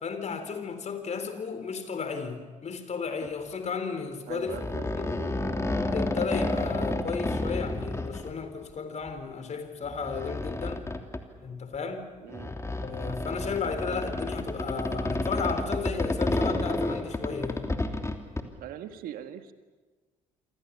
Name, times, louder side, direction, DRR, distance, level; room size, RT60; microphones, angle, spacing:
voice 1, 0.0-4.6 5.0-5.1 5.9-10.9 11.4-12.0 12.7-17.7, left 5 dB, 45° left, 9 dB, 3.9 m, -34 dB
sound 1, 3.2-3.3 4.4-8.3 9.1-9.2 9.8-11.2 12.3-18.4, left 2 dB, 15° left, 3.1 m, -30 dB
voice 2, 4.2-5.3 12.2-12.5 18.6-19.5, right 10 dB, 65° right, 9 dB, 1.7 m, -41 dB
28.0 x 24.5 x 7.2 m, 1.3 s
hypercardioid pair, 50°, 16 cm